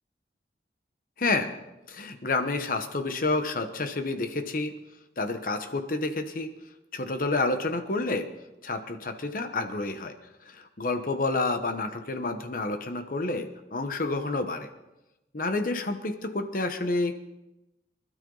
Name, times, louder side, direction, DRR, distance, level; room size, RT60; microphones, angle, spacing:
voice 1, 1.2-1.5 1.9-4.7 5.2-6.5 6.9-8.3 8.6-10.1 10.4-14.7 15.3-17.1, left 2 dB, 50° left, 7 dB, 1.1 m, -29 dB
25.0 x 12.5 x 4.0 m, 0.95 s
head